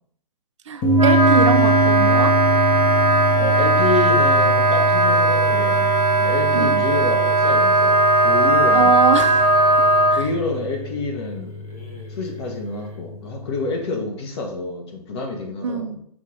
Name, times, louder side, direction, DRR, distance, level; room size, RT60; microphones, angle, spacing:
voice 1, 0.7-2.3 6.5-6.9 8.7-9.5 10.1-10.3 15.6-16.0, right 6 dB, 50° right, 9 dB, 0.4 m, -23 dB
sound 1, 0.8-13.7, left 1 dB, 20° left, 0.8 m, -24 dB
Wind instrument woodwind instrument, 0.9-10.2, right 2 dB, 90° right, 0.7 m, -18 dB
voice 2, 3.4-5.9 6.2-8.9 10.1-11.6 12.1-16.0, left 3 dB, 45° left, 2 dB, 1.0 m, -28 dB
sound 2, 5.4-13.1, right 1 dB, 85° left, 1.6 m, -40 dB
5.3 x 2.5 x 3.3 m, 0.66 s
figure-of-eight pair, 125°, 20 cm